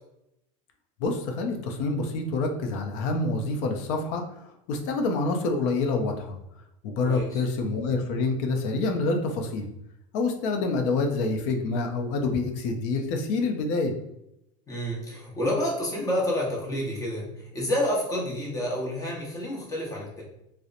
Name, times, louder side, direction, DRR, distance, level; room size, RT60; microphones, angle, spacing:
voice 1, 1.0-4.2 4.7-6.4 6.8-9.7 10.1-13.9, left 3 dB, 60° left, 4 dB, 0.5 m, -27 dB
voice 2, 7.0-7.4 14.7-20.2, left 1 dB, 20° left, -3 dB, 0.8 m, -29 dB
2.8 x 2.0 x 2.4 m, 0.82 s
supercardioid pair, 130°, 17 cm